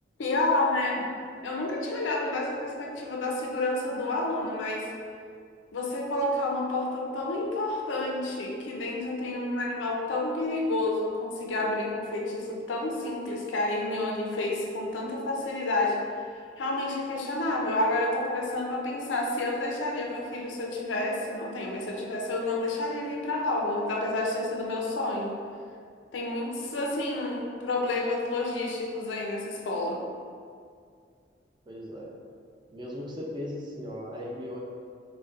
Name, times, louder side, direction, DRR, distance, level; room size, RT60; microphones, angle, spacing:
voice 1, 0.2-1.1 1.4-4.9 5.7-16.0 16.6-25.4 26.1-30.0, left 2 dB, 80° left, -1 dB, 0.5 m, -29 dB
voice 2, 31.7-32.1 32.7-34.6, left 1 dB, 25° right, -3 dB, 0.4 m, -37 dB
3.8 x 2.1 x 2.4 m, 2.3 s
head